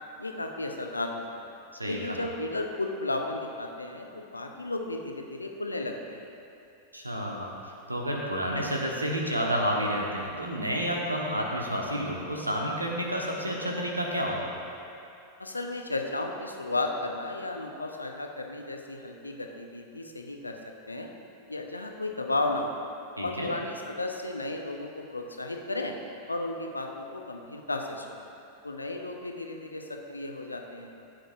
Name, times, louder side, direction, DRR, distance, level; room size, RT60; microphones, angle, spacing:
voice 1, 0.2-1.5 1.9-6.3 15.4-20.6 20.9-21.1 21.5-22.8 23.2-26.0 26.3-28.3 28.6-31.0, left 2 dB, 80° left, 3 dB, 0.7 m, -34 dB
voice 2, 1.7-2.2 6.9-7.5 7.9-14.5 23.2-23.5, equal, 85° right, -1 dB, 1.2 m, -30 dB
15.0 x 7.8 x 2.6 m, 2.8 s
figure-of-eight pair, 90°, 0 cm